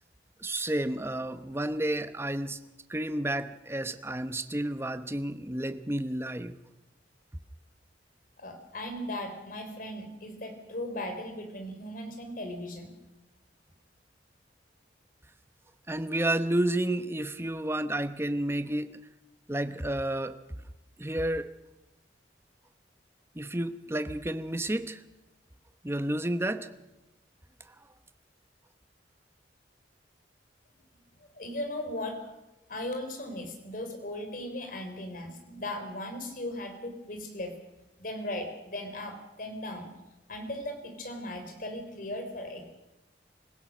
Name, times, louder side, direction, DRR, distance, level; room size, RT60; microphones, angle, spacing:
voice 1, 0.4-2.6 2.9-6.6 15.9-19.0 19.5-20.4 21.0-21.5 23.3-25.0 25.8-26.7, right 1 dB, 15° right, 10 dB, 0.9 m, -31 dB
voice 2, 8.4-12.9 31.3-32.3 32.7-37.5 38.0-39.9 40.3-42.6, left 1 dB, 50° left, 5 dB, 3.7 m, -37 dB
25.5 x 16.5 x 6.3 m, 0.97 s
head